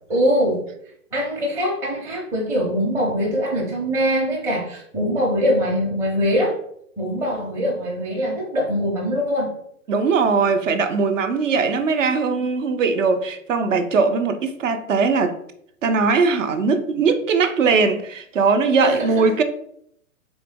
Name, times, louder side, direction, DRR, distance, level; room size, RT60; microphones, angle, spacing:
voice 1, 0.1-0.6 1.1-6.5 7.0-9.5 18.8-19.1, equal, 5° right, 0.5 m, -22 dB
voice 2, 9.9-15.3 15.8-19.4, right 4 dB, 60° right, 0.6 m, -20 dB
3.8 x 3.0 x 3.4 m
figure-of-eight pair, 120°, 44 cm